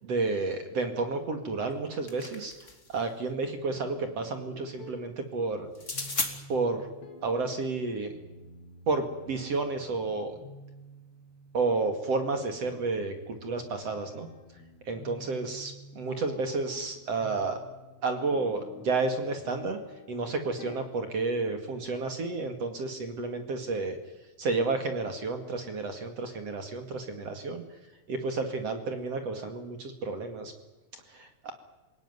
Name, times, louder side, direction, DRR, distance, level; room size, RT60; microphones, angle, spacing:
voice 1, 0.0-2.5 2.9-5.7 6.5-6.9 7.2-8.1 8.9-10.3 11.5-14.3 14.9-17.6 18.0-19.8 20.1-24.0 24.4-27.6 28.1-30.5 31.1-31.5, right 3 dB, 45° right, 6 dB, 2.7 m, -31 dB
sound 1, 1.7-3.0 5.7-6.3, left 3 dB, 20° left, 2.6 m, -34 dB
sound 2, 3.7-21.7, left 2 dB, 90° left, 5.8 m, -51 dB
28.0 x 18.0 x 9.6 m, 1.1 s
omnidirectional pair, 4.7 m